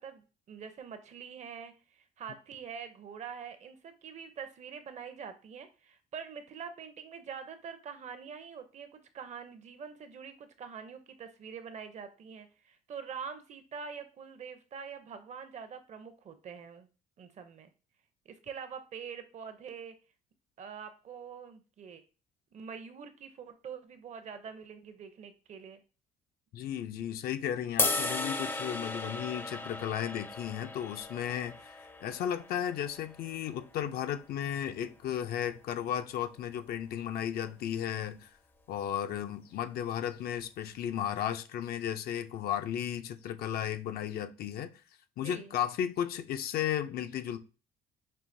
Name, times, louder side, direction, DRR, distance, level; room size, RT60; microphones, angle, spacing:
voice 1, 0.0-16.9 17.2-17.7 18.3-20.0 20.6-22.0 22.5-25.8 45.2-45.5, right 6 dB, 45° right, 0.6 m, -45 dB
voice 2, 26.5-38.3 38.7-44.7 45.2-47.4, left 10 dB, 65° left, 0.5 m, -34 dB
sound 1, 27.8-34.0, left 2 dB, 10° left, 0.5 m, -36 dB
5.5 x 2.7 x 2.6 m
cardioid pair, 110°, 17 cm